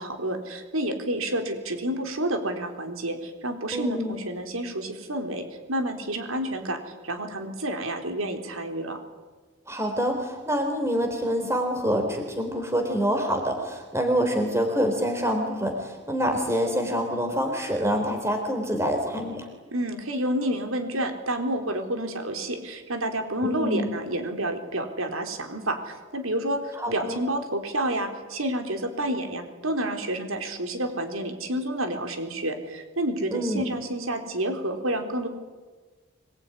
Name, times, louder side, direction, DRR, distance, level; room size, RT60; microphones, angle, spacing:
voice 1, 0.0-9.0 19.7-35.3, right 1 dB, 80° right, 6 dB, 4.0 m, -29 dB
voice 2, 3.7-4.2 9.7-19.5 23.4-23.9 26.8-27.2 33.3-33.6, equal, 15° right, 5 dB, 4.0 m, -26 dB
25.5 x 21.5 x 10.0 m, 1.4 s
head